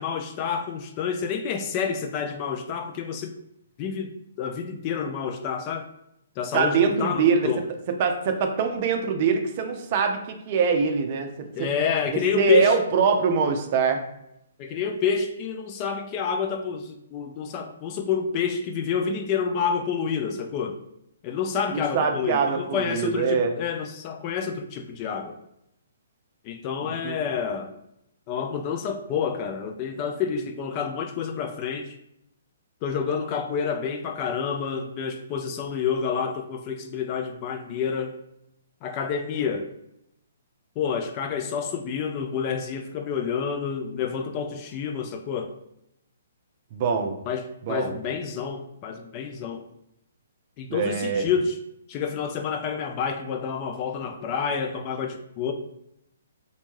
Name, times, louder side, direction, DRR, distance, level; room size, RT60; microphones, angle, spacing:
voice 1, 0.0-3.3 3.8-4.1 4.4-5.8 6.4-7.6 11.6-12.7 14.6-20.8 21.2-25.3 26.4-27.7 28.3-31.9 32.8-38.1 38.8-39.7 40.8-45.5 47.3-49.6 50.6-51.6 51.9-55.5, left 6 dB, 35° left, 5 dB, 0.3 m, -28 dB
voice 2, 6.5-7.5 7.9-11.7 12.1-14.0 21.7-23.5 26.8-27.2 46.7-47.2 47.6-48.0 50.7-51.3, right 5 dB, 45° right, 5 dB, 0.4 m, -24 dB
2.6 x 2.2 x 3.1 m, 0.80 s
hypercardioid pair, 140°, 0 cm